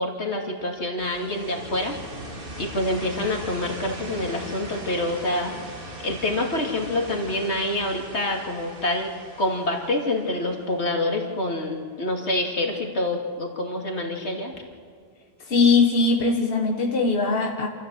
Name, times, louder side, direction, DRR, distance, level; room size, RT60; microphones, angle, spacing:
voice 1, 0.0-2.0 2.6-5.5 6.0-9.1 9.4-14.5, left 1 dB, 85° left, 1 dB, 2.9 m, -26 dB
sound 1, 1.0-11.7, right 1 dB, 55° right, 2.8 m, -40 dB
voice 2, 15.5-17.7, left 4 dB, 60° left, 2 dB, 1.5 m, -20 dB
27.5 x 14.0 x 7.7 m, 2.1 s
omnidirectional pair, 1.1 m